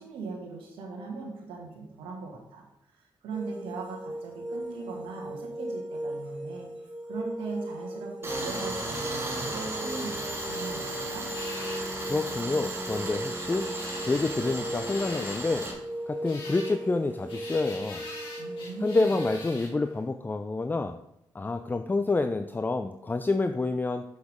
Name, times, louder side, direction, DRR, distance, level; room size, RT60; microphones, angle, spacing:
voice 1, 0.0-2.6 3.2-6.7 7.1-11.3 18.4-19.1, right 4 dB, 85° right, 0 dB, 1.7 m, -39 dB
sound 1, 3.3-19.4, right 1 dB, 10° right, 2.4 m, -38 dB
Tools, 8.2-15.7, right 1 dB, 30° right, 2.0 m, -35 dB
sound 2, 11.3-20.0, left 2 dB, 70° left, 2.4 m, -45 dB
voice 2, 12.1-13.6 14.0-15.7 16.1-18.1 18.8-21.0 21.3-24.0, left 3 dB, 20° left, 9 dB, 0.4 m, -28 dB
7.0 x 6.4 x 3.6 m, 0.80 s
supercardioid pair, 50°, 9 cm